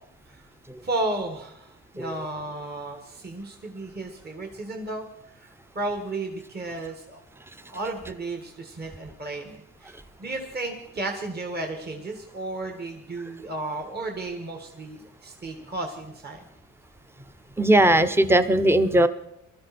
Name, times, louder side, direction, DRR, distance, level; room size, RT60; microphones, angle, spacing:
voice 1, 0.8-5.1 5.4-5.5 5.8-7.2 7.7-16.5, right 2 dB, 30° right, 3 dB, 2.0 m, -33 dB
voice 2, 17.6-19.1, right 1 dB, 10° right, 11 dB, 0.8 m, -18 dB
19.5 x 13.0 x 4.4 m, 0.80 s
cardioid pair, 90°, 30 cm